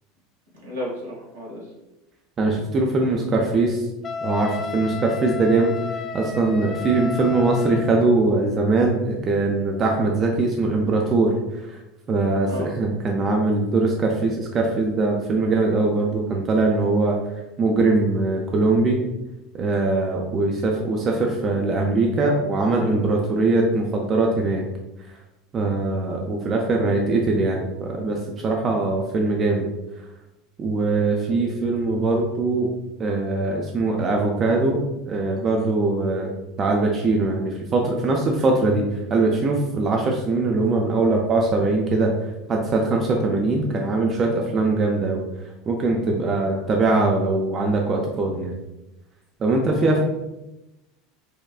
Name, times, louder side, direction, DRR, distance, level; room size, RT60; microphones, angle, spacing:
voice 1, 0.6-1.6 12.5-12.7 45.9-46.1 49.7-50.0, left 1 dB, 85° right, -5 dB, 1.1 m, -34 dB
voice 2, 2.4-3.8 4.2-5.7 6.1-11.3 11.7-11.8 12.1-17.2 17.6-19.0 19.5-24.6 25.5-29.7 30.6-32.7 33.0-34.8 35.1-36.3 36.6-38.8 39.1-42.1 42.5-45.2 45.7-48.5 49.4-50.0, right 3 dB, 35° right, 0 dB, 0.4 m, -21 dB
Wind instrument woodwind instrument, 4.0-7.9, left 5 dB, 35° left, 0.3 m, -32 dB
3.4 x 2.3 x 2.4 m, 0.96 s
hypercardioid pair, 80°, 0 cm